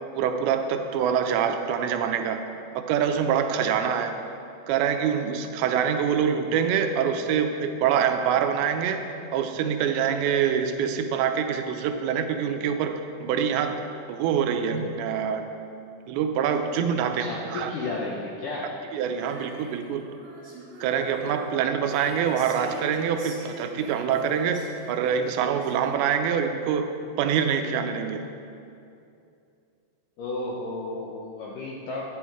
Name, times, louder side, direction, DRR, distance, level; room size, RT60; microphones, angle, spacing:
voice 1, 0.1-2.4 2.9-4.1 4.7-9.0 9.3-13.8 14.1-15.5 16.1-17.8 18.9-20.0 20.8-26.9 27.2-28.3, right 7 dB, 80° right, 6 dB, 2.9 m, -25 dB
voice 2, 17.0-18.7 30.2-32.0, left 2 dB, 75° left, -4 dB, 1.9 m, -33 dB
Female singing, 19.1-26.4, right 1 dB, 40° right, 2.9 m, -43 dB
12.5 x 10.5 x 4.7 m, 2.6 s
omnidirectional pair, 5.2 m